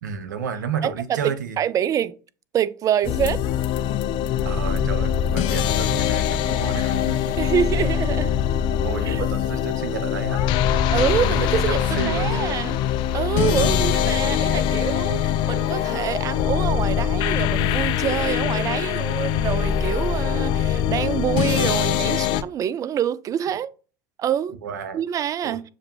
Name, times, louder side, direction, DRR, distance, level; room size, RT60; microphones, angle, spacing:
voice 1, 0.0-1.6 4.4-7.3 8.8-10.8 11.2-12.5 13.6-14.0 14.6-14.8 24.6-25.0 25.4-25.6, right 6 dB, 85° right, 0.6 m, -31 dB
voice 2, 1.2-2.1 2.5-3.4 7.4-8.3 9.0-9.3 10.9-12.8 13.1-23.7 24.2-24.6 24.9-25.6, right 9 dB, 35° right, 0.3 m, -26 dB
sound 1, 3.0-22.4, left 9 dB, 55° left, 0.4 m, -23 dB
6.6 x 2.6 x 2.9 m
hypercardioid pair, 80°, 10 cm